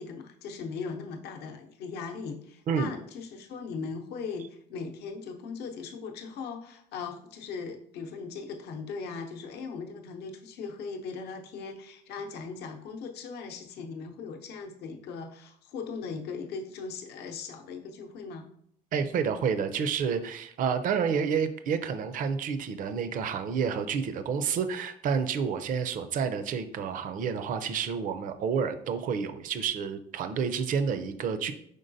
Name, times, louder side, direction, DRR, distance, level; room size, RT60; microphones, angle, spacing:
voice 1, 0.0-18.5, left 5 dB, 75° left, 3 dB, 0.7 m, -39 dB
voice 2, 18.9-31.5, right 6 dB, 55° right, 10 dB, 0.4 m, -29 dB
5.2 x 3.7 x 2.6 m, 0.67 s
cardioid pair, 110°, 17 cm